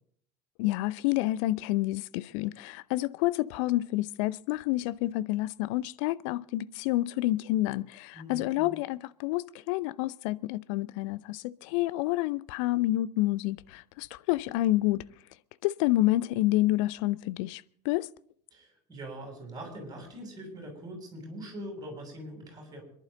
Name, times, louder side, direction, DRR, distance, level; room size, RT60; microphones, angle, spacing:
voice 1, 0.6-15.0 15.6-18.1, left 17 dB, 50° left, 0.6 m, -29 dB
voice 2, 8.1-8.7 18.5-22.8, equal, 20° right, 7.1 m, -42 dB
26.5 x 11.5 x 3.9 m
figure-of-eight pair, 75°, 21 cm